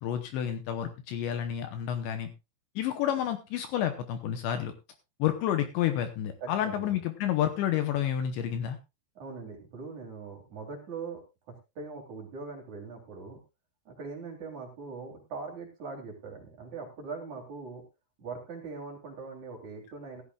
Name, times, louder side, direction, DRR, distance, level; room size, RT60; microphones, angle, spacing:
voice 1, 0.0-2.3 2.8-4.7 5.2-8.8, left 10 dB, 75° left, 8 dB, 2.9 m, -30 dB
voice 2, 6.4-7.0 9.2-11.2 11.5-13.4 13.9-17.8 18.2-20.2, right 4 dB, 40° right, 1 dB, 3.5 m, -41 dB
16.5 x 14.0 x 2.4 m, 0.25 s
omnidirectional pair, 5.8 m